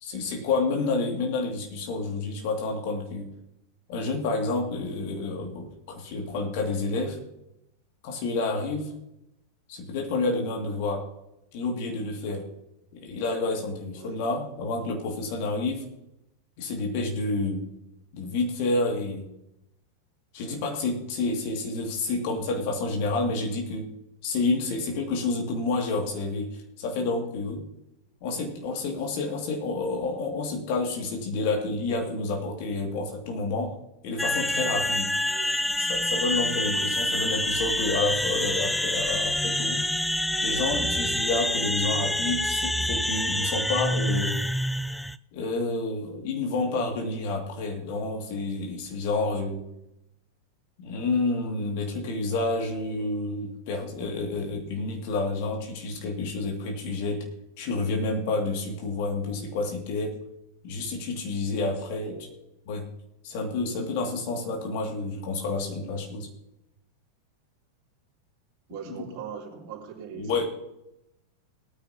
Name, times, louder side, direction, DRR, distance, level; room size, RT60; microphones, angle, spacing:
voice 1, 0.0-3.3 3.9-7.2 8.0-8.9 9.7-11.1 11.5-12.5 12.9-15.9 16.6-17.7 18.1-19.3 20.3-23.9 24.2-27.6 28.2-33.8 34.0-35.1 35.8-39.8 40.4-44.4 45.3-49.6 50.8-57.3 57.6-60.2 60.6-62.2 62.7-62.9 63.2-66.3 70.2-70.4, left 3 dB, 50° left, 1 dB, 2.6 m, -29 dB
sound 1, 34.2-45.2, left 1 dB, 5° left, 0.4 m, -27 dB
voice 2, 68.7-70.4, right 7 dB, 45° right, -1 dB, 3.5 m, -40 dB
20.0 x 9.7 x 3.0 m, 0.86 s
figure-of-eight pair, 90°, 0 cm